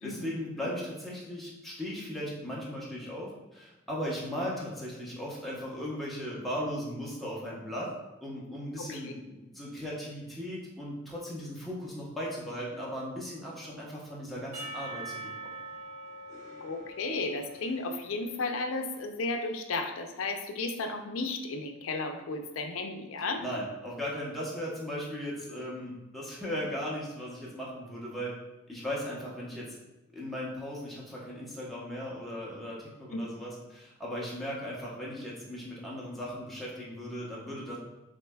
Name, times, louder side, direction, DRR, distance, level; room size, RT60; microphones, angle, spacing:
voice 1, 0.0-7.9 8.2-15.6 23.4-28.3 28.7-29.7 30.1-37.8, equal, ahead, -6 dB, 0.9 m, -37 dB
voice 2, 8.8-9.1 16.6-23.4 33.1-33.3, left 3 dB, 80° left, 5 dB, 0.5 m, -34 dB
Percussion / Church bell, 14.5-18.7, right 2 dB, 35° right, 1.1 m, -43 dB
6.5 x 2.6 x 2.2 m, 1.1 s
head